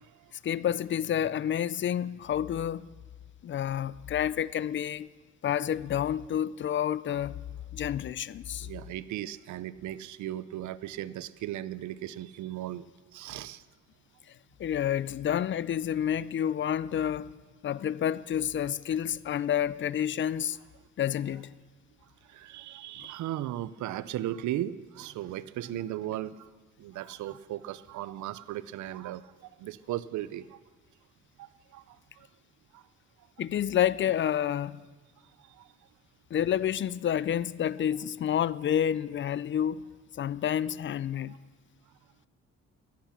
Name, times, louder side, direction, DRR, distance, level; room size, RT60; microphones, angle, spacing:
voice 1, 0.4-2.9 3.4-5.1 5.4-7.4 7.7-8.7 14.6-17.3 17.6-20.6 21.0-21.5 23.0-23.1 33.4-34.8 36.3-39.8 40.1-41.4, left 10 dB, 40° left, 0.4 m, -29 dB
voice 2, 8.6-13.6 22.0-26.5 26.8-30.6 31.4-32.3 32.7-32.9 33.2-33.3 35.2-35.9 41.3-41.4, right 13 dB, 70° right, 0.6 m, -37 dB
14.0 x 10.5 x 6.0 m
cardioid pair, 90°, 30 cm